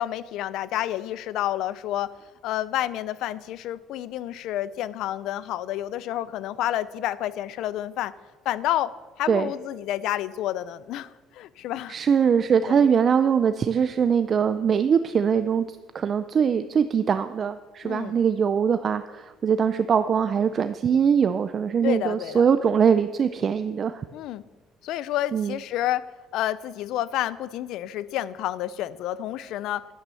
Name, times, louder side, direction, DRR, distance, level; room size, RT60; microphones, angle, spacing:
voice 1, 0.0-2.1 2.4-8.1 8.4-12.0 12.7-12.9 17.8-18.2 21.8-22.4 24.1-24.4 24.8-26.1 26.3-29.9, left 13 dB, 70° left, 18 dB, 0.5 m, -29 dB
voice 2, 11.9-15.6 15.9-24.0 25.3-25.6, right 7 dB, 40° right, 11 dB, 0.4 m, -22 dB
11.0 x 9.0 x 6.9 m, 1.3 s
cardioid pair, 130°, 0 cm